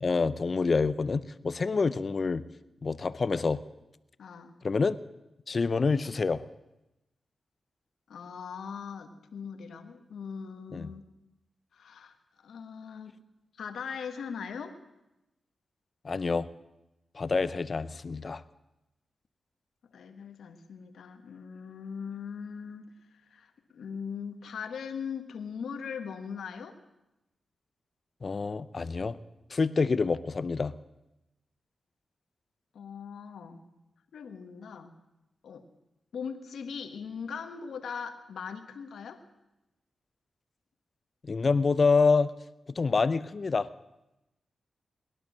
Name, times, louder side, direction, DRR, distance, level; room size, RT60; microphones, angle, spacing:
voice 1, 0.0-2.4 2.8-3.6 4.6-5.0 5.5-6.4 10.7-10.9 16.0-16.5 17.1-18.4 28.2-29.2 29.5-30.7 41.3-42.3 42.7-43.7, left 4 dB, 50° left, 15 dB, 0.7 m, -27 dB
voice 2, 4.2-4.6 8.1-11.0 11.7-12.1 12.4-13.2 13.6-14.7 19.9-26.8 32.7-33.6 34.1-34.9 35.4-35.6 36.1-39.2, left 6 dB, 85° left, 6 dB, 1.5 m, -40 dB
20.5 x 11.0 x 6.3 m, 0.95 s
cardioid pair, 60°, 0 cm